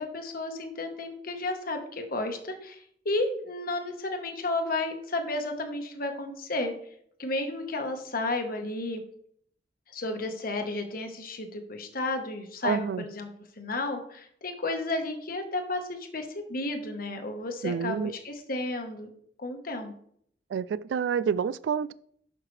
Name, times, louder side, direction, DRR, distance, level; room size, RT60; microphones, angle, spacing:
voice 1, 0.0-6.7 7.2-9.0 9.9-13.3 13.6-19.1 19.4-19.9, left 2 dB, 55° left, 5 dB, 1.3 m, -32 dB
voice 2, 12.6-13.0 17.6-18.1 20.5-21.9, right 7 dB, 80° right, 17 dB, 0.3 m, -28 dB
11.5 x 5.7 x 3.3 m, 0.65 s
head